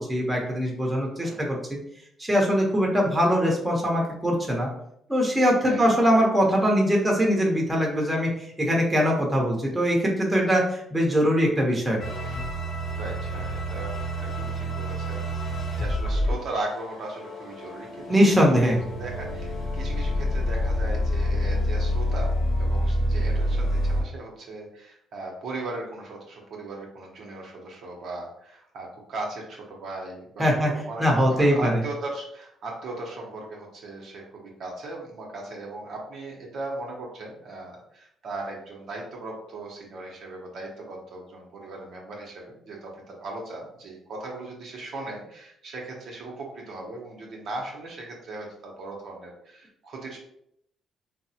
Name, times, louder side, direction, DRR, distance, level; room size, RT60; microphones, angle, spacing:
voice 1, 0.0-1.8 2.2-4.7 5.1-12.0 18.1-18.8 30.4-30.7 31.0-31.8, equal, 10° right, -2 dB, 0.8 m, -22 dB
sound 1, 12.0-24.0, equal, 75° left, 0.9 m, -27 dB
voice 2, 12.9-18.1 18.4-18.5 19.0-50.2, right 2 dB, 65° right, -1 dB, 0.7 m, -38 dB
3.2 x 2.0 x 2.7 m, 0.73 s
cardioid pair, 90°, 0 cm